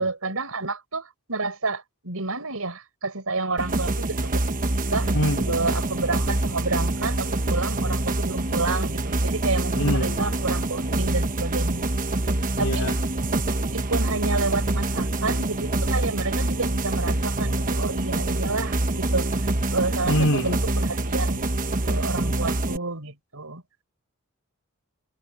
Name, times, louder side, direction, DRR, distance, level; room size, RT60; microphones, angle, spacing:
voice 1, 0.0-4.4 4.9-5.1 5.5-11.9 12.6-12.9 13.7-21.5 21.9-23.6, right 3 dB, 75° right, 5.1 m, -30 dB
sound 1, 3.6-22.8, right 2 dB, 40° right, 1.2 m, -25 dB
voice 2, 5.1-5.6 9.8-10.2 12.5-12.9 20.1-20.6, left 1 dB, 85° left, 2.9 m, -25 dB
head